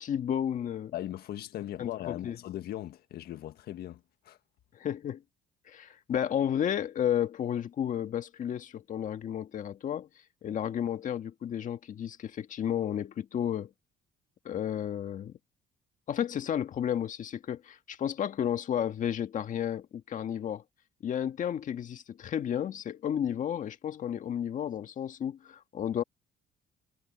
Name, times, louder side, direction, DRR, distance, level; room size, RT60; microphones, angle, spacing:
voice 1, 0.0-0.9 1.8-2.4 4.7-5.2 5.7-10.1 10.4-13.7 14.5-15.3 16.1-20.6 21.0-26.0, left 9 dB, 50° left, 1.7 m, -32 dB
voice 2, 0.9-4.4, left 13 dB, 70° left, 1.6 m, -39 dB
cardioid pair, 110°, 17 cm